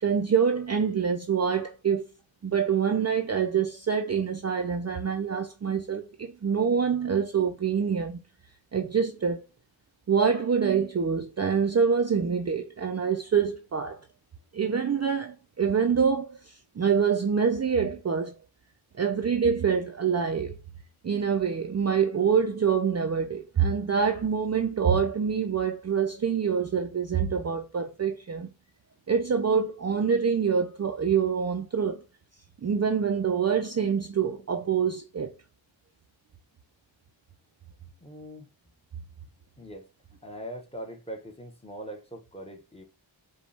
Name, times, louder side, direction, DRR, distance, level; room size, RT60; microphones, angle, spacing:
voice 1, 0.0-2.1 2.4-8.2 8.7-9.4 10.1-14.0 14.5-18.3 19.0-20.5 21.0-28.5 29.1-32.0 32.6-35.3, right 6 dB, 35° right, 0.4 m, -26 dB
voice 2, 38.0-38.5 39.6-39.9 40.2-42.8, right 1 dB, 10° left, 1.0 m, -41 dB
5.0 x 2.3 x 3.3 m
wide cardioid pair, 75°, 48 cm